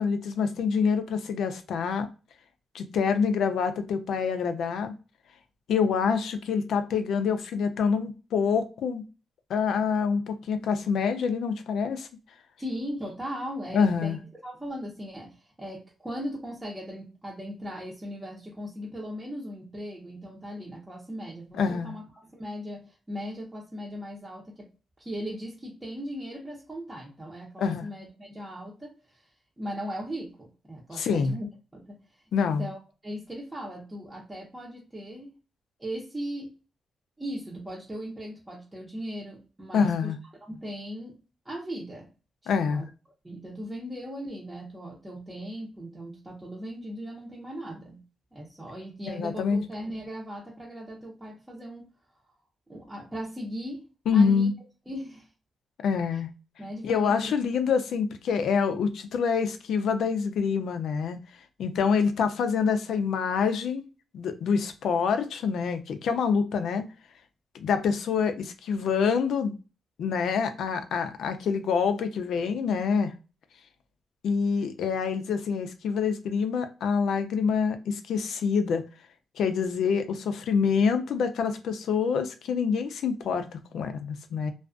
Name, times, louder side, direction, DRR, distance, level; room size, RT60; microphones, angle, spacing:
voice 1, 0.0-2.1 2.7-4.9 5.7-9.0 9.5-12.1 13.7-14.2 21.6-21.9 27.6-27.8 30.9-31.3 32.3-32.7 39.7-40.2 42.5-42.8 49.1-49.6 54.1-54.5 55.8-56.3 56.8-61.2 61.6-63.8 64.1-66.8 67.5-69.6 70.0-73.1 74.2-78.8 79.4-84.5, left 6 dB, 80° left, 9 dB, 0.4 m, -26 dB
voice 2, 12.6-24.7 25.0-29.3 29.6-32.0 32.4-35.3 35.8-36.5 37.2-40.1 40.4-41.1 41.4-42.1 42.4-42.9 43.2-48.0 48.3-51.9 52.7-53.9 54.1-54.5 54.9-55.3 56.1-56.2 56.6-57.3, equal, 15° right, -3 dB, 0.7 m, -38 dB
2.3 x 2.2 x 2.4 m, 0.33 s
cardioid pair, 110°, 0 cm